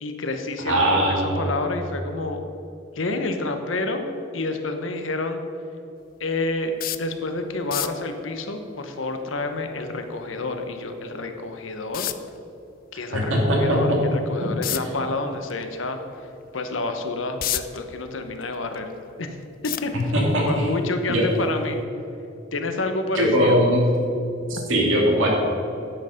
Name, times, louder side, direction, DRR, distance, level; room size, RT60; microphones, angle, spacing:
voice 1, 0.0-2.4 2.9-4.1 4.3-5.4 6.2-12.1 12.9-16.3 16.5-18.9 19.2-19.4 19.6-20.1 20.5-21.8 22.5-23.6, left 2 dB, 90° left, 6 dB, 1.0 m, -29 dB
voice 2, 0.7-1.5 13.1-14.0 20.1-20.5 21.1-21.3 23.1-23.8 24.5-25.3, equal, 90° right, -3 dB, 2.7 m, -20 dB
sound 1, 6.8-7.1 7.6-8.0 10.8-10.9 11.9-12.3 14.6-14.9 15.5-15.6 16.1-16.2 17.0-17.8 18.3-19.0 19.6-20.3 21.2-21.5 21.8-21.9, left 13 dB, 50° left, 0.4 m, -29 dB
10.0 x 8.0 x 5.1 m, 2.8 s
head